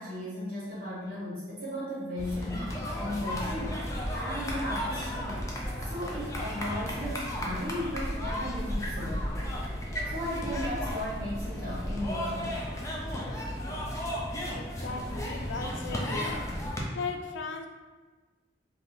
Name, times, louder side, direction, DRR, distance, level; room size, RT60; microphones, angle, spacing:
voice 1, 0.0-3.8 4.1-5.5 5.9-9.2 10.0-12.6, left 1 dB, 50° right, -10 dB, 1.4 m, -36 dB
sound 1, 2.2-16.8, equal, 15° left, 0.3 m, -34 dB
voice 2, 14.5-16.5 16.9-17.7, left 4 dB, 90° left, 4 dB, 0.4 m, -37 dB
2.6 x 2.5 x 3.4 m, 1.3 s
head